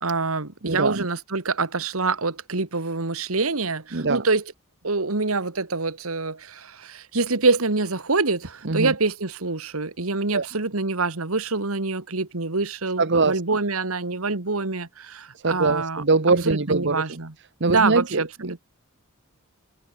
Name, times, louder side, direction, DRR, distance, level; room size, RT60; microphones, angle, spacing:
voice 1, 0.0-4.4 4.8-16.0 16.5-17.3 17.7-18.7, right 3 dB, 75° right, 1.9 m, -25 dB
voice 2, 0.6-1.1 3.9-4.2 8.6-8.9 10.3-10.5 13.0-13.4 15.4-17.2 17.6-18.5, right 3 dB, 55° right, 1.3 m, -23 dB
head